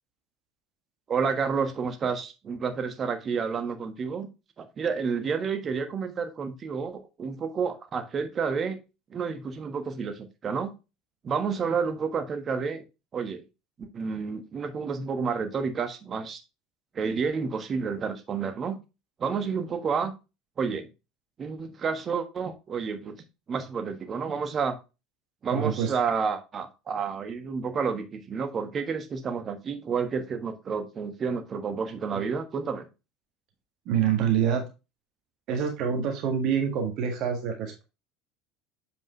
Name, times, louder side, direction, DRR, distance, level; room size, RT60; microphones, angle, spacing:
voice 1, 1.1-4.3 4.6-8.8 9.1-10.7 11.2-12.8 13.1-13.4 13.8-16.4 16.9-18.8 19.2-20.1 20.6-20.9 21.4-23.2 23.5-24.7 25.4-32.9, right 5 dB, 35° right, 9 dB, 1.4 m, -30 dB
voice 2, 25.5-25.9 33.8-34.6 35.5-37.8, right 8 dB, 55° right, 3 dB, 1.7 m, -26 dB
7.7 x 5.4 x 3.2 m, 0.27 s
figure-of-eight pair, 65°, 0 cm